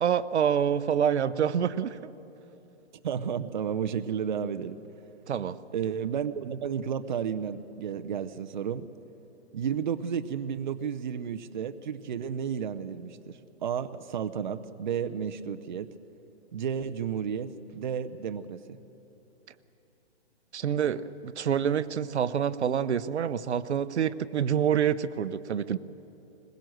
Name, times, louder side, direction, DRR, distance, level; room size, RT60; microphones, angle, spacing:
voice 1, 0.0-2.1 5.3-5.6 20.5-25.8, right 8 dB, 75° right, 15 dB, 0.8 m, -27 dB
voice 2, 3.0-4.8 5.7-8.9 9.5-15.9 16.5-18.6, right 7 dB, 45° right, 9 dB, 0.6 m, -32 dB
21.5 x 21.0 x 7.8 m, 3.0 s
hypercardioid pair, 170°, 34 cm